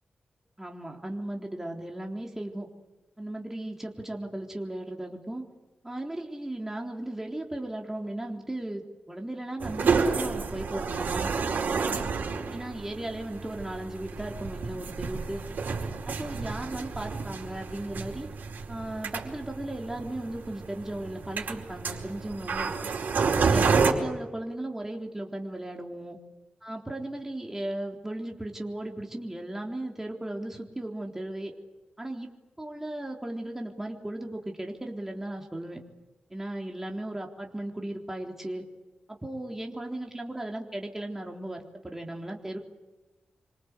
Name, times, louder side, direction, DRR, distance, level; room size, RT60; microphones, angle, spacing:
voice 1, 0.6-2.7 3.2-5.4 5.8-11.5 12.5-15.4 16.1-18.3 18.7-22.9 23.4-26.2 26.6-31.5 32.0-32.3 32.6-35.8 36.3-38.7 39.1-42.6, right 1 dB, 10° right, 1 dB, 3.7 m, -36 dB
sound 1, 9.6-23.9, right 5 dB, 75° right, 4.6 m, -30 dB
28.0 x 25.0 x 8.3 m, 1.1 s
wide cardioid pair, 110°, 3 cm